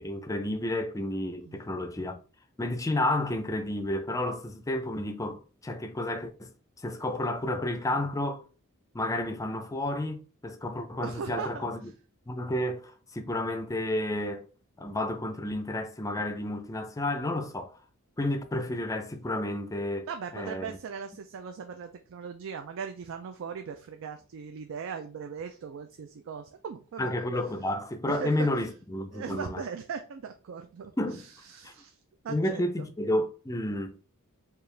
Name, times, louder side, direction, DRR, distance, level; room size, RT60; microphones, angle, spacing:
voice 1, 0.0-2.2 2.6-6.5 6.8-8.4 8.9-11.9 12.3-14.4 14.8-17.7 18.2-20.1 20.3-20.8 27.0-29.6 31.0-31.3 32.3-34.0, left 1 dB, 15° left, 0.4 m, -31 dB
voice 2, 11.0-11.7 20.1-27.1 28.1-28.5 29.1-30.9 31.5-32.0 32.2-32.9, right 6 dB, 60° right, 0.4 m, -39 dB
4.6 x 2.4 x 3.2 m
head